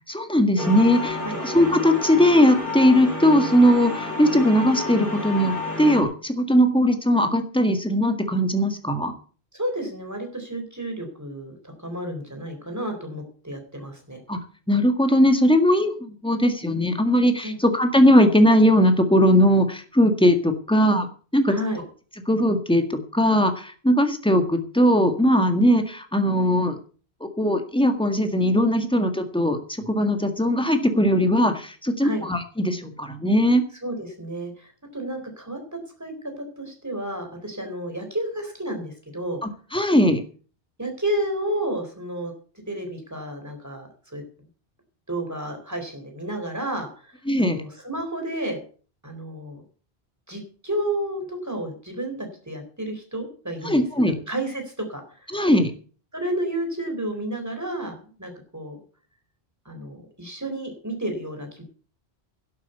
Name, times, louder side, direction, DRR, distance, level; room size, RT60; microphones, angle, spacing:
voice 1, 0.1-9.1 14.3-14.4 14.7-21.1 21.3-21.5 22.3-26.8 27.4-33.6 39.4-40.2 47.3-47.6 53.6-54.1 55.3-55.7, equal, 5° left, 6 dB, 1.8 m, -19 dB
sound 1, 0.6-6.0, left 2 dB, 50° left, 4.0 m, -30 dB
voice 2, 9.5-14.2 17.4-17.6 21.5-21.8 32.0-32.2 33.8-39.4 40.8-42.3 42.7-44.2 45.1-48.6 49.0-49.6 50.3-55.4 56.1-58.8 59.7-61.6, right 1 dB, 15° right, 4 dB, 4.1 m, -31 dB
11.5 x 8.4 x 8.2 m, 0.41 s
omnidirectional pair, 1.0 m